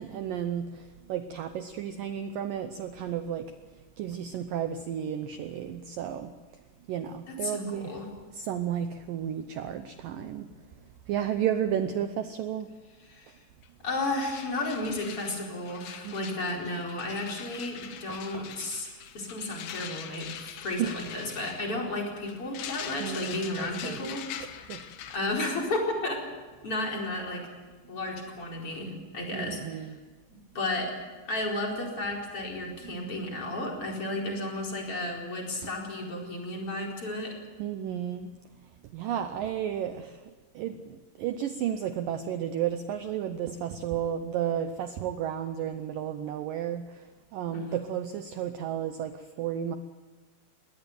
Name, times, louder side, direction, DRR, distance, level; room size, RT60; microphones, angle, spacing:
voice 1, 0.0-3.5 4.0-6.3 6.9-8.0 8.3-10.5 11.1-12.7 16.0-16.4 18.1-18.4 20.8-20.9 23.0-24.0 24.4-24.8 29.3-30.0 32.8-33.4 37.6-38.3 38.9-40.2 40.6-46.9 47.3-49.8, right 9 dB, 85° right, 9 dB, 1.9 m, -33 dB
voice 2, 7.3-8.0 13.1-13.3 13.8-18.9 19.1-24.2 25.1-26.2 26.6-27.5 27.9-29.8 30.5-30.9 31.3-37.4 47.5-47.8, left 2 dB, 30° left, 0 dB, 5.0 m, -33 dB
sound 1, 13.6-13.7 13.9-25.2, left 9 dB, 75° left, 3.4 m, -43 dB
21.5 x 18.0 x 9.4 m, 1.3 s
omnidirectional pair, 5.1 m